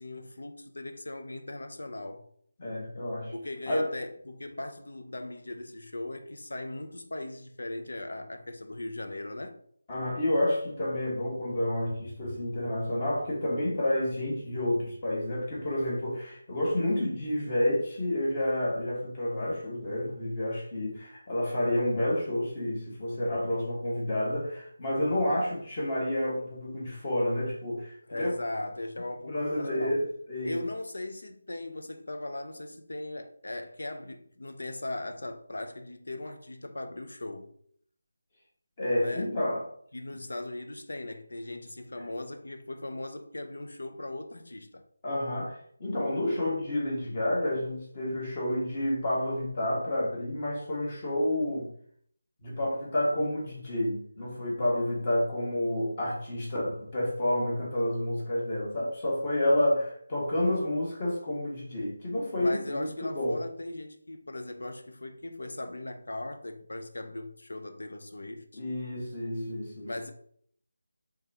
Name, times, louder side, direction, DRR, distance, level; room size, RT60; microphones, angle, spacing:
voice 1, 0.0-2.2 3.3-9.6 28.0-29.9 30.4-37.5 39.0-39.3 39.9-44.8 62.4-68.6 69.8-70.1, left 2 dB, 65° left, 0.6 m, -38 dB
voice 2, 2.6-3.3 3.7-3.9 9.9-28.3 29.3-30.6 38.8-39.7 45.0-51.7 52.4-63.4 68.5-69.9, left 1 dB, 30° left, 1.7 m, -29 dB
4.6 x 3.6 x 2.8 m
figure-of-eight pair, 160°, 0 cm